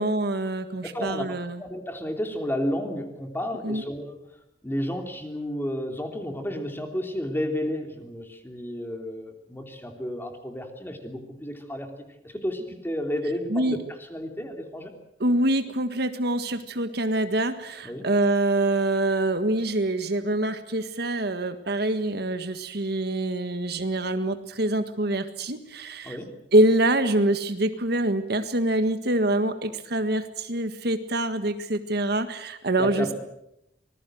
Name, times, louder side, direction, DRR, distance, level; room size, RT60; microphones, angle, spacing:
voice 1, 0.0-1.6 3.6-3.8 13.5-13.8 15.2-26.2 26.5-33.1, right 1 dB, 65° right, 9 dB, 1.7 m, -25 dB
voice 2, 0.8-1.3 1.6-4.2 4.6-11.9 12.2-13.8 14.1-14.9 17.8-18.1 26.0-26.3 32.8-33.2, equal, 10° left, 4 dB, 3.3 m, -32 dB
25.5 x 20.0 x 7.8 m, 0.81 s
head